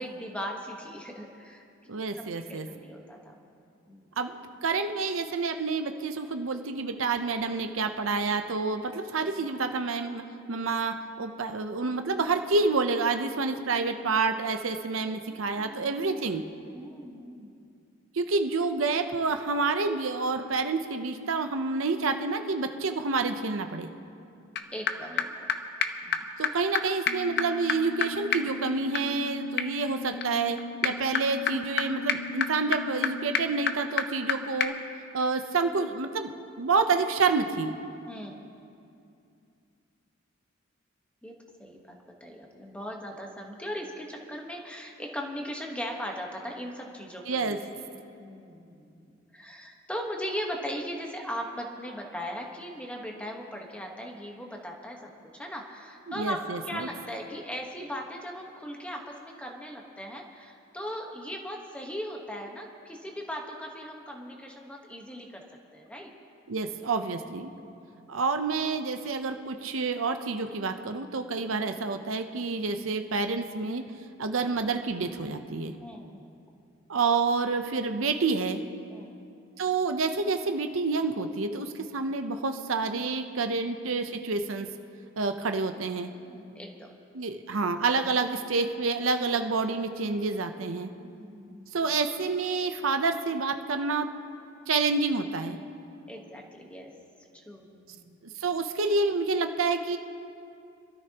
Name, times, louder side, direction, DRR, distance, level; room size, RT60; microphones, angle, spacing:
voice 1, 0.0-1.6 2.2-3.4 3.9-4.1 15.2-16.1 16.7-17.5 24.7-25.5 26.0-26.2 38.1-38.5 41.2-41.8 42.2-47.8 48.2-65.4 65.7-66.1 67.5-68.2 75.8-76.4 78.9-79.2 86.2-86.9 91.0-91.7 96.1-96.9 97.4-98.1, equal, 5° left, 1 dB, 1.3 m, -39 dB
voice 2, 1.9-2.7 4.2-4.4 4.6-10.2 10.5-16.4 18.1-23.9 26.4-30.6 30.8-34.7 35.1-36.3 36.6-37.7 47.3-47.6 56.1-56.9 66.5-67.5 68.1-73.8 74.2-75.7 76.9-78.6 79.6-84.7 85.2-86.1 87.1-90.9 91.7-94.1 94.7-95.6 98.4-100.0, right 4 dB, 85° right, 7 dB, 0.7 m, -28 dB
sound 1, 24.6-24.7 24.9-25.0 25.2-25.3 25.5-25.6 25.8-25.9 26.1-26.2 26.4-26.5 26.7-26.8 27.1-34.3 34.6-34.7, left 6 dB, 55° left, 0.7 m, -31 dB
25.0 x 13.0 x 2.9 m, 2.5 s
head